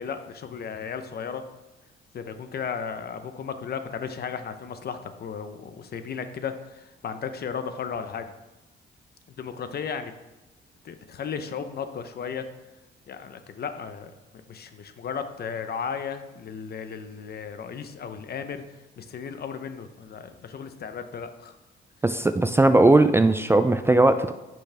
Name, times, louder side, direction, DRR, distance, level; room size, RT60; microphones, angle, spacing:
voice 1, 0.0-1.4 2.1-8.3 9.4-10.1 10.8-12.5 13.1-21.6, left 6 dB, 50° left, 9 dB, 0.8 m, -35 dB
voice 2, 22.0-24.3, right 2 dB, 10° right, 10 dB, 0.4 m, -18 dB
10.0 x 6.2 x 3.5 m, 1.1 s
cardioid pair, 90°, 20 cm